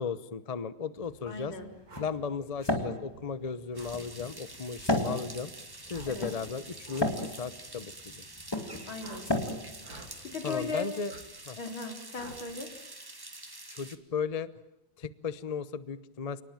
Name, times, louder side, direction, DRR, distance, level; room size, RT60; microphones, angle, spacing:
voice 1, 0.0-1.5 2.0-5.5 5.9-8.2 10.4-11.1 11.5-11.6 13.7-14.5 15.0-16.4, left 6 dB, 35° left, 16 dB, 0.6 m, -36 dB
sound 1, 1.0-10.8, left 1 dB, 10° left, 2.3 m, -35 dB
voice 2, 1.3-1.7 6.1-6.3 8.9-9.3 10.2-10.9 11.6-12.7, left 4 dB, 85° left, 4 dB, 4.7 m, -37 dB
sound 2, 1.9-2.1 3.7-4.0 5.9-6.2 6.8-7.1 9.0-9.3 9.8-10.1 11.1-11.3 12.2-12.4, right 2 dB, 70° right, 4.3 m, -48 dB
sound 3, 3.7-14.0, right 2 dB, 10° right, 1.6 m, -47 dB
29.0 x 19.5 x 8.9 m, 0.88 s
omnidirectional pair, 2.2 m